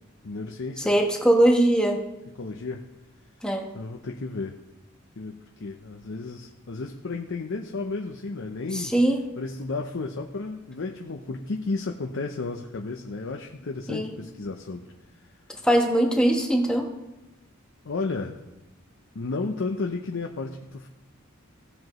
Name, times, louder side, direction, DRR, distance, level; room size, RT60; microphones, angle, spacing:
voice 1, 0.2-1.0 2.4-2.8 3.7-4.6 5.2-8.9 9.4-14.9 17.8-18.4 19.1-20.9, left 3 dB, 60° left, 3 dB, 0.7 m, -33 dB
voice 2, 0.8-2.0 3.4-3.7 8.7-9.2 13.9-14.1 15.6-16.9, right 1 dB, 5° left, 2 dB, 1.1 m, -21 dB
16.0 x 7.6 x 3.1 m, 0.98 s
head